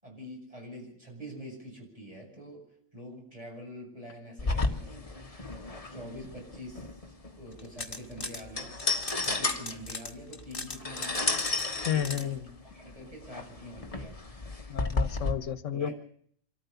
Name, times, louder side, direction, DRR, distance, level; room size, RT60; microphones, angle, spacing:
voice 1, 0.0-2.6 2.9-5.2 5.9-7.0 7.4-8.8 9.2-11.4 11.7-12.4 12.7-14.2 15.7-15.9, equal, 30° right, 0 dB, 7.9 m, -45 dB
sound 1, 4.4-15.3, left 3 dB, 30° left, 1.8 m, -33 dB
sound 2, 7.5-8.4 8.8-12.2, left 3 dB, 45° left, 2.2 m, -39 dB
voice 2, 11.9-12.4 14.7-15.9, left 9 dB, 85° left, 14 dB, 1.4 m, -31 dB
26.0 x 14.0 x 7.0 m, 0.62 s
omnidirectional pair, 1.3 m